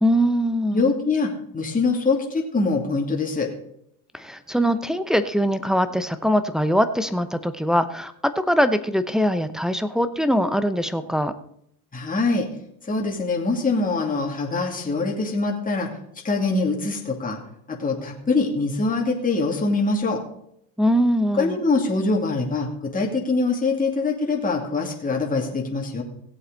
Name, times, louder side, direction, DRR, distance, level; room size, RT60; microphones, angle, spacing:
voice 1, 0.0-0.9 4.1-11.3 20.8-21.6, equal, ahead, 9 dB, 0.6 m, -22 dB
voice 2, 0.7-3.5 11.9-12.5 12.9-15.9 16.2-17.4 17.7-20.2 21.4-26.0, left 3 dB, 15° left, -1 dB, 2.6 m, -23 dB
17.0 x 8.0 x 4.0 m, 0.74 s
supercardioid pair, 115°, 48 cm